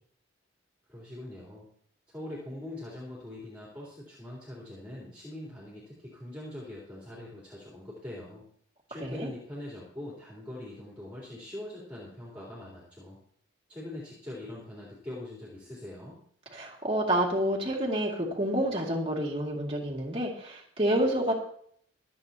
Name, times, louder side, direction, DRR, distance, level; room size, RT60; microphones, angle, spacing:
voice 1, 0.9-1.7 2.1-8.4 8.9-13.2 13.7-16.2, left 1 dB, 5° right, -7 dB, 3.6 m, -42 dB
voice 2, 16.5-21.3, right 1 dB, 25° right, -3 dB, 2.4 m, -28 dB
25.5 x 8.5 x 2.9 m, 0.64 s
head